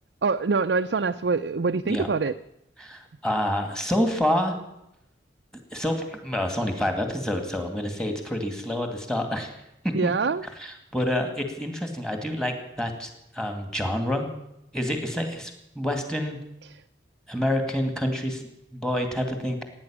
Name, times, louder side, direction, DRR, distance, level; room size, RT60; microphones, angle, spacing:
voice 1, 0.2-2.4 9.9-10.4, right 4 dB, 65° right, 5 dB, 0.5 m, -24 dB
voice 2, 2.8-4.6 5.7-9.5 10.0-10.1 10.6-14.3 14.7-16.4 17.3-18.4 18.7-19.6, left 1 dB, 5° left, 5 dB, 2.3 m, -28 dB
17.0 x 9.8 x 8.8 m, 0.84 s
head